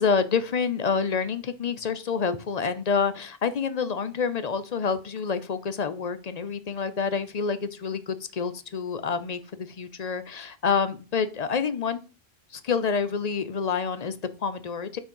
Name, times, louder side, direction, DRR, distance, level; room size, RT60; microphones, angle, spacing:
voice 1, 0.0-12.0 12.5-15.0, left 6 dB, 45° left, 12 dB, 0.6 m, -28 dB
5.7 x 4.5 x 5.4 m, 0.34 s
omnidirectional pair, 1.1 m